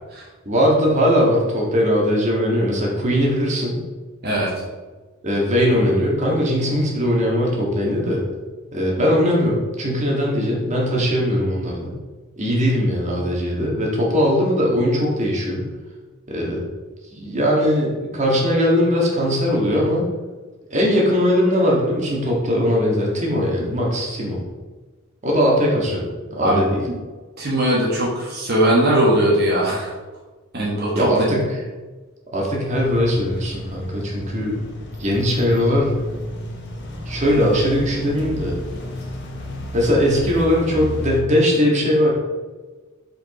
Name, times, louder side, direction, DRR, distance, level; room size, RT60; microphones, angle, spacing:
voice 1, 0.4-3.8 5.2-8.2 8.7-11.9 12.4-15.6 16.3-16.6 17.1-20.0 20.7-24.4 25.2-26.8 30.9-31.6 32.3-34.5 35.0-36.0 37.0-38.5 39.7-42.1, equal, 35° right, -3 dB, 1.7 m, -20 dB
voice 2, 27.4-29.9 30.5-31.4, right 1 dB, 50° right, -5 dB, 1.4 m, -19 dB
sound 1, 32.7-41.2, left 1 dB, 55° left, 1.2 m, -32 dB
5.4 x 5.1 x 4.9 m, 1.3 s
head